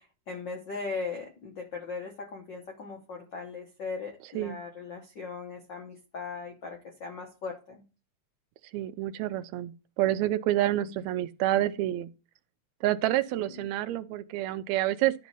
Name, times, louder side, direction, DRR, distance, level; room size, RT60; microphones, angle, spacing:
voice 1, 0.0-7.8 10.6-11.0 13.4-13.7, left 4 dB, 65° left, 1.1 m, -39 dB
voice 2, 8.7-12.1 12.8-15.1, right 14 dB, 80° right, 1.7 m, -28 dB
11.5 x 4.1 x 5.4 m
omnidirectional pair, 3.5 m